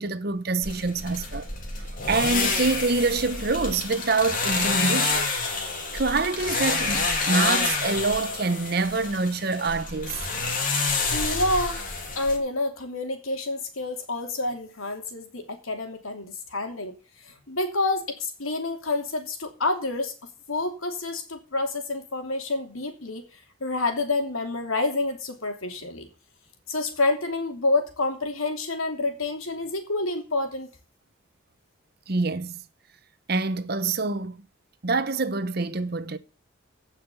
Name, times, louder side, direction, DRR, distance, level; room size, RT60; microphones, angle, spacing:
voice 1, 0.0-1.5 1.8-5.6 5.9-10.2 32.1-32.6 33.3-34.4 34.8-36.2, right 3 dB, 50° right, 0.9 m, -26 dB
sound 1, 0.6-12.4, left 3 dB, 40° left, 2.8 m, -28 dB
voice 2, 11.1-11.8 12.1-16.9 17.2-20.1 20.5-26.1 26.7-30.7, left 2 dB, 90° left, 3.0 m, -28 dB
16.0 x 5.8 x 7.0 m
head